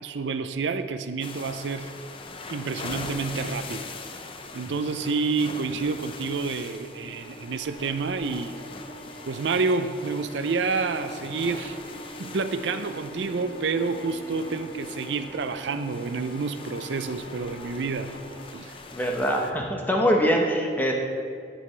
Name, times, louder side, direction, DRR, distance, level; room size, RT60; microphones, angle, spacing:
voice 1, 0.0-1.9 2.5-3.9 4.5-8.5 9.3-11.8 12.2-18.1 18.5-18.7, right 4 dB, 70° right, 10 dB, 0.5 m, -29 dB
sound 1, 1.2-19.5, left 3 dB, 30° left, 0.5 m, -42 dB
sound 2, 5.7-18.4, equal, 60° left, 1.7 m, -44 dB
voice 2, 18.9-20.9, equal, 10° left, 0 dB, 0.9 m, -23 dB
12.5 x 6.9 x 3.3 m, 2.4 s
head